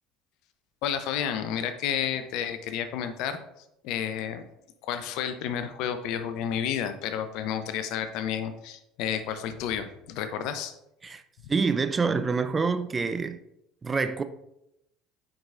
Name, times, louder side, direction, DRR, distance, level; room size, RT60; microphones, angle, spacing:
voice 1, 0.8-3.4 3.8-4.4 4.8-10.7, left 9 dB, 65° left, 0.6 m, -31 dB
voice 2, 11.5-13.4 13.8-14.2, right 4 dB, 25° right, 0.5 m, -26 dB
9.2 x 4.8 x 2.5 m
hypercardioid pair, 70°, 0 cm